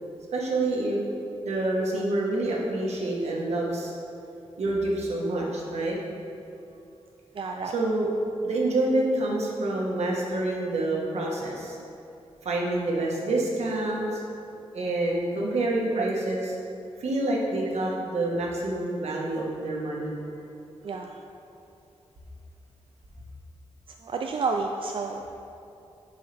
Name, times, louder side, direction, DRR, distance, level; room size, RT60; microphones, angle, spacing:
voice 1, 0.3-1.0 1.4-3.9 4.6-6.0 7.6-8.1 8.4-11.8 12.4-14.2 14.7-16.5 17.0-20.2 20.9-21.2, right 2 dB, 85° right, -2 dB, 1.4 m, -27 dB
voice 2, 7.3-7.7 14.2-14.3 16.0-16.1 20.8-21.2 24.0-25.3, right 4 dB, 55° right, 3 dB, 0.4 m, -30 dB
11.0 x 5.5 x 3.4 m, 2.7 s
wide cardioid pair, 115°, 11 cm